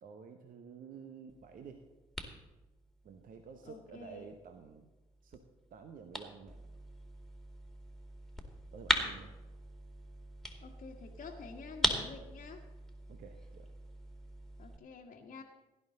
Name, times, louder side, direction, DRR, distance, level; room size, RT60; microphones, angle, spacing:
voice 1, 0.0-1.8 3.0-4.9 5.2-5.4 5.7-6.6 8.7-9.3 13.1-13.7, right 6 dB, 50° right, 6 dB, 1.1 m, -51 dB
sound 1, 1.3-14.8, equal, 5° left, 2.2 m, -41 dB
voice 2, 3.6-4.3 8.9-9.3 10.6-12.6 14.6-15.4, left 5 dB, 45° left, -2 dB, 1.4 m, -49 dB
17.5 x 11.0 x 3.9 m, 1.1 s
figure-of-eight pair, 45°, 18 cm